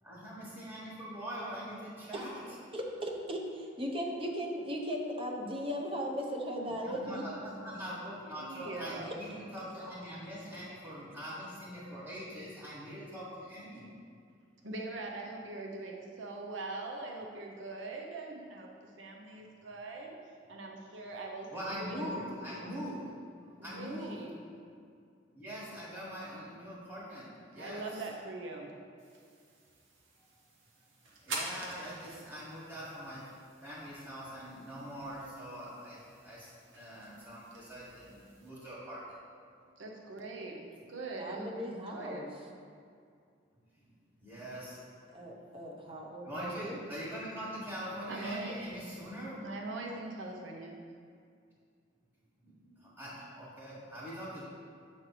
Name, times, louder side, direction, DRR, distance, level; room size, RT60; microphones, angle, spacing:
voice 1, 0.0-2.3 6.8-13.9 21.5-23.2 23.4-24.2 25.3-28.0 31.2-33.3 33.6-39.2 43.8-43.9 44.2-45.0 46.2-49.4 52.4-54.4, equal, 10° right, -9 dB, 1.6 m, -43 dB
voice 2, 2.7-7.3 41.2-42.3 45.1-46.8, equal, 30° right, 0 dB, 0.8 m, -37 dB
voice 3, 6.4-7.9 8.4-9.6 14.6-20.1 20.5-22.8 23.6-24.4 27.5-28.7 39.8-42.3 48.1-48.7 49.4-50.9, right 2 dB, 70° right, 0 dB, 0.8 m, -43 dB
sound 1, 29.0-38.5, right 2 dB, 85° right, 1.0 m, -48 dB
7.9 x 3.3 x 5.7 m, 2.3 s
head